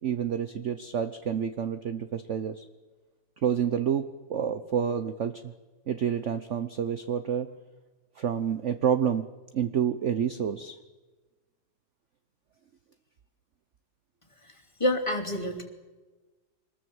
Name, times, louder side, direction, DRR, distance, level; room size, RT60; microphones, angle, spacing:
voice 1, 0.0-2.6 3.4-5.5 5.9-7.5 8.2-9.3 9.5-10.8, right 8 dB, 50° right, 10 dB, 0.9 m, -28 dB
voice 2, 14.8-15.6, left 1 dB, 15° left, 2 dB, 2.9 m, -27 dB
25.0 x 21.0 x 7.9 m, 1.3 s
omnidirectional pair, 2.2 m